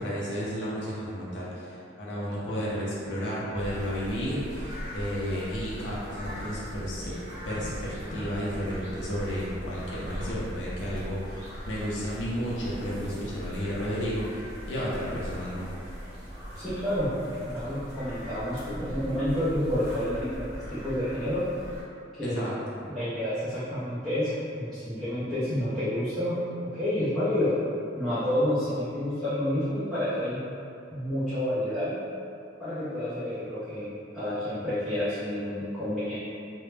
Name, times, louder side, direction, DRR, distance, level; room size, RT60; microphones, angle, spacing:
voice 1, 0.0-7.1 7.4-15.7 18.8-18.9 22.2-22.8, equal, 75° left, -7 dB, 0.5 m, -32 dB
sound 1, 3.5-21.8, equal, 35° right, 0.8 m, -40 dB
voice 2, 16.5-17.1 17.4-21.4 22.2-22.4 22.9-26.4 26.7-27.6 27.9-30.4 30.9-32.0 32.6-36.1, left 1 dB, ahead, -16 dB, 0.5 m, -29 dB
2.1 x 2.0 x 3.1 m, 2.5 s
head